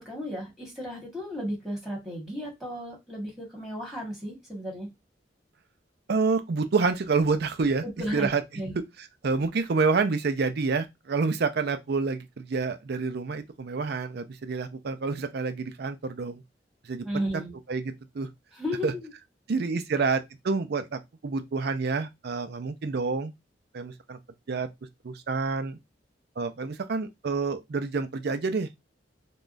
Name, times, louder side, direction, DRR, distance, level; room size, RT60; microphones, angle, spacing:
voice 1, 0.0-4.9 7.8-8.3 8.5-8.8 17.0-17.5 18.5-19.1, equal, ahead, 1.5 m, -34 dB
voice 2, 6.1-7.8 8.1-8.4 9.2-16.4 16.8-17.1 17.7-18.3 18.8-18.9 19.5-20.2 20.4-23.3 23.7-24.2 24.5-24.7 25.0-25.8 26.4-28.7, right 4 dB, 60° right, 0.5 m, -28 dB
3.5 x 2.3 x 2.5 m
head